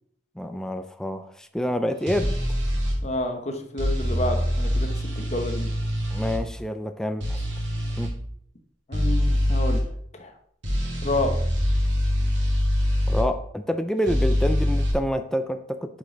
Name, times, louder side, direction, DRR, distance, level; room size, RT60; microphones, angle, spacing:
voice 1, 0.4-2.4 6.1-7.4 8.0-8.2 13.1-16.0, equal, 5° left, 7 dB, 0.4 m, -28 dB
sound 1, 2.1-3.0 3.8-6.4 7.2-8.1 8.9-9.8 10.6-13.3 14.1-14.9, equal, 75° right, 2.1 m, -24 dB
voice 2, 3.0-5.7 8.9-9.8 10.1-10.3 11.0-11.3, left 1 dB, 35° left, 5 dB, 0.9 m, -29 dB
8.6 x 5.2 x 3.9 m, 0.66 s
head